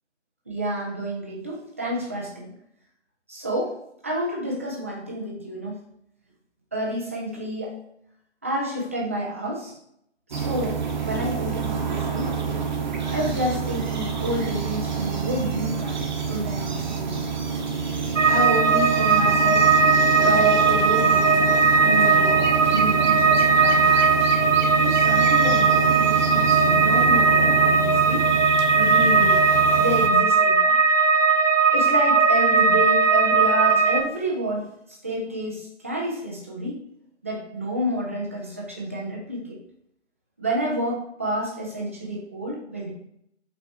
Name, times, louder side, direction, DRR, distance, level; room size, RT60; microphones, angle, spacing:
voice 1, 0.5-2.5 3.3-3.8 4.0-5.8 6.7-7.7 8.4-9.8 10.3-12.4 13.1-17.3 18.3-19.7 20.1-21.6 21.8-24.4 24.8-28.3 28.7-29.4 29.8-30.7 31.7-36.8 37.2-39.6 40.4-42.9, right 1 dB, 10° right, -2 dB, 0.5 m, -29 dB
sound 1, 10.3-30.1, right 6 dB, 40° right, 1.0 m, -27 dB
sound 2, 18.2-34.0, right 4 dB, 85° right, 1.1 m, -19 dB
5.6 x 4.1 x 4.6 m, 0.73 s
figure-of-eight pair, 145°, 36 cm